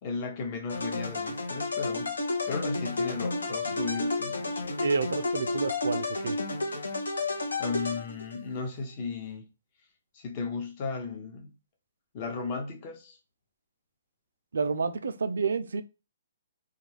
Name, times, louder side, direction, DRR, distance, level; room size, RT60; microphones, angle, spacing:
voice 1, 0.0-2.1 2.5-4.7 7.6-9.5 10.1-11.5 12.1-13.2, left 4 dB, 40° left, 0.6 m, -35 dB
sound 1, 0.7-8.4, left 3 dB, 85° left, 0.7 m, -31 dB
voice 2, 3.7-4.0 4.8-6.4 14.5-15.8, right 4 dB, 75° right, 0.3 m, -30 dB
2.3 x 2.3 x 3.2 m
hypercardioid pair, 140°, 0 cm